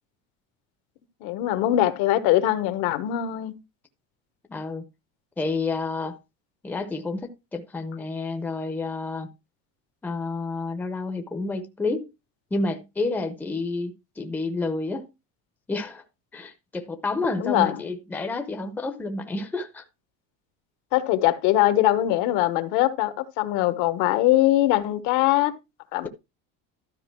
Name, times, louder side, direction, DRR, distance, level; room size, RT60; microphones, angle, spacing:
voice 1, 1.2-3.5 17.4-17.8 20.9-25.5 25.9-26.1, left 14 dB, 65° left, 1.3 m, -22 dB
voice 2, 4.5-4.8 5.4-6.2 6.6-9.3 10.0-12.1 12.5-15.1 15.7-16.0 16.3-19.8, left 3 dB, 5° left, 0.7 m, -29 dB
12.5 x 5.2 x 4.6 m
cardioid pair, 170°, 35 cm